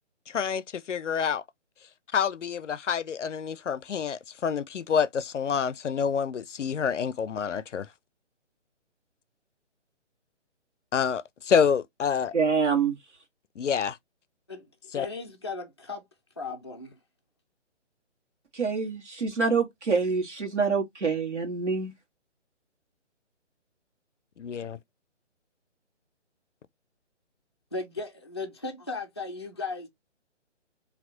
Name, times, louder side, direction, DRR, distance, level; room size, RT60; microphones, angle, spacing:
voice 1, 0.3-1.4 2.1-7.9 10.9-12.3 13.6-14.0 14.9-15.1 24.4-24.8, left 7 dB, 80° left, 0.5 m, -27 dB
voice 2, 12.3-12.9 18.5-21.9, right 5 dB, 70° right, 1.6 m, -26 dB
voice 3, 14.9-16.0 16.4-17.0 27.7-29.9, left 3 dB, 25° left, 0.4 m, -36 dB
4.3 x 2.8 x 2.7 m
figure-of-eight pair, 140°, 36 cm